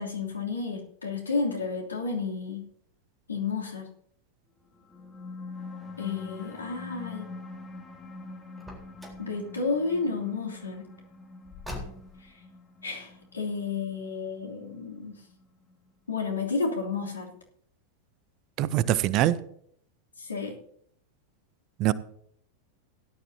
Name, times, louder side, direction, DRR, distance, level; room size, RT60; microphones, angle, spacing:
voice 1, 0.0-2.6 3.3-3.8 6.0-7.3 9.2-10.8 12.8-15.2 16.1-17.3 20.2-20.6, left 4 dB, 75° left, 3.1 m, -31 dB
sound 1, 4.8-15.7, left 3 dB, 15° left, 2.6 m, -44 dB
Car, 8.5-9.3 11.4-12.3, left 1 dB, ahead, 4.0 m, -41 dB
voice 2, 18.6-19.4 21.8-21.9, right 13 dB, 40° right, 0.6 m, -23 dB
17.5 x 11.5 x 2.8 m
figure-of-eight pair, 90°, 0 cm